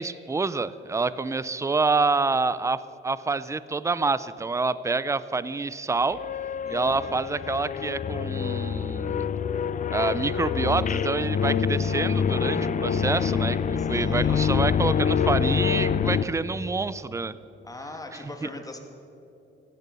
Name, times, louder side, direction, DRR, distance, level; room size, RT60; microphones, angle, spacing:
voice 1, 0.0-6.2 6.7-9.3 9.9-17.4 18.4-18.5, right 3 dB, 15° right, 16 dB, 0.6 m, -27 dB
sound 1, 6.1-16.2, left 7 dB, 40° left, 0.6 m, -26 dB
voice 2, 6.6-7.1 13.8-14.5 17.6-18.8, left 2 dB, 15° left, 4 dB, 2.4 m, -41 dB
16.0 x 11.0 x 6.9 m, 2.9 s
cardioid pair, 90°, 20 cm